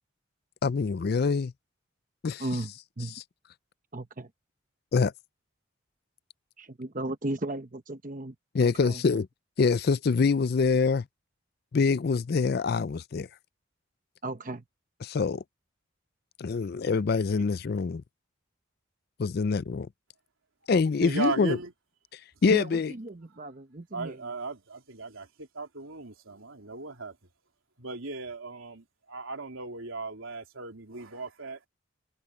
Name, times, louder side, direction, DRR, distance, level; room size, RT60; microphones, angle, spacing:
voice 1, 0.6-1.5 2.2-2.5 3.0-3.2 4.9-5.1 8.5-9.3 9.6-11.1 11.7-13.3 15.0-15.4 16.4-18.0 19.2-19.9 20.7-21.6 22.1-22.9, left 4 dB, 50° left, 0.4 m, -25 dB
voice 2, 2.4-2.7 3.0-3.1 3.9-4.3 6.6-8.3 8.8-9.0 14.2-14.6 22.5-24.2, right 2 dB, 40° right, 1.0 m, -35 dB
voice 3, 21.0-21.7 23.3-23.4 23.9-27.1 27.8-31.6, right 3 dB, 80° right, 3.2 m, -37 dB
open air
head